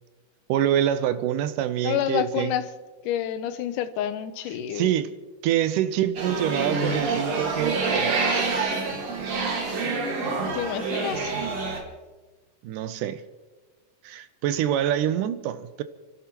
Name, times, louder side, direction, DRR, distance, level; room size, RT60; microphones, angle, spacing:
voice 1, 0.5-2.5 4.7-5.1 5.4-8.1 12.6-13.2 14.0-15.8, right 11 dB, 80° right, 2.2 m, -25 dB
voice 2, 1.8-2.6 3.1-4.9 10.5-11.3, left 10 dB, 85° left, 2.2 m, -28 dB
sound 1, 6.2-11.8, right 4 dB, 55° right, 2.9 m, -27 dB
29.5 x 13.0 x 3.0 m
omnidirectional pair, 3.8 m